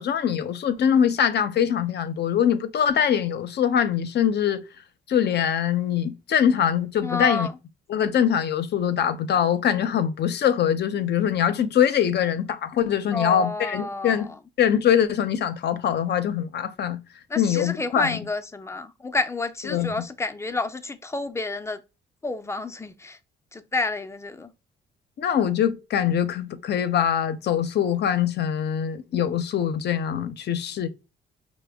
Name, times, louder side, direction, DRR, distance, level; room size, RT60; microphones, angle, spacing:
voice 1, 0.0-4.6 5.1-7.5 7.9-14.3 14.6-17.0 17.4-18.2 19.6-20.0 25.2-30.9, left 9 dB, 55° left, 0.6 m, -23 dB
voice 2, 7.0-7.5 13.1-14.2 17.3-21.8 22.2-23.2 23.5-24.5, left 3 dB, 15° left, 0.5 m, -29 dB
4.9 x 2.1 x 3.4 m
cardioid pair, 90°, 20 cm